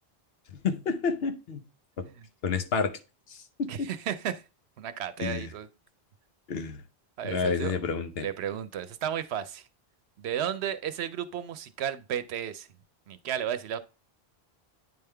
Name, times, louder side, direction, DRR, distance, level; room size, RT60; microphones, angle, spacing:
voice 1, 0.5-1.6 2.4-2.9 3.3-3.9 5.2-5.5 6.5-6.8 7.2-8.3, left 5 dB, 70° left, 1.0 m, -30 dB
voice 2, 3.7-4.5 4.8-5.7 7.2-7.9 8.2-9.7 10.2-12.7 13.1-13.8, right 9 dB, 85° right, 0.9 m, -33 dB
9.2 x 3.6 x 3.3 m
omnidirectional pair, 1.1 m